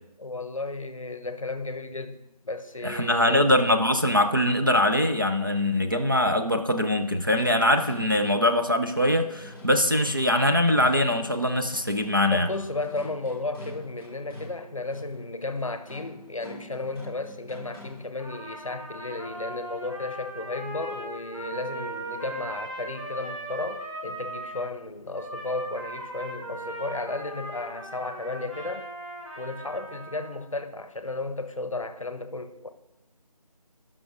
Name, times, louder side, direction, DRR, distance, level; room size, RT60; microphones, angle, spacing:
voice 1, 0.2-3.5 12.3-28.9 29.4-32.7, left 2 dB, 55° left, 0.7 m, -34 dB
voice 2, 2.8-12.5, left 1 dB, 35° right, 0.4 m, -22 dB
sound 1, 7.0-18.2, left 1 dB, 5° right, 2.0 m, -46 dB
Trumpet, 18.2-24.7 25.1-30.5, right 1 dB, 50° right, 2.6 m, -38 dB
17.0 x 6.1 x 2.5 m
figure-of-eight pair, 170°, 20 cm